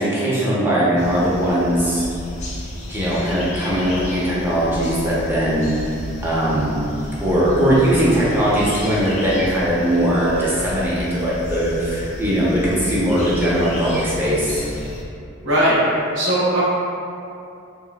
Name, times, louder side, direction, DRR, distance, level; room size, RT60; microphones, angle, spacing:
voice 1, 0.0-2.0 2.9-5.7 6.2-6.7 7.2-14.6, equal, 10° right, -9 dB, 0.7 m, -20 dB
sound 1, 1.0-15.0, left 1 dB, 35° left, 0.5 m, -32 dB
voice 2, 7.8-8.1 15.4-15.8 16.1-16.6, right 1 dB, 65° right, -7 dB, 0.8 m, -19 dB
4.2 x 3.5 x 2.2 m, 2.6 s
head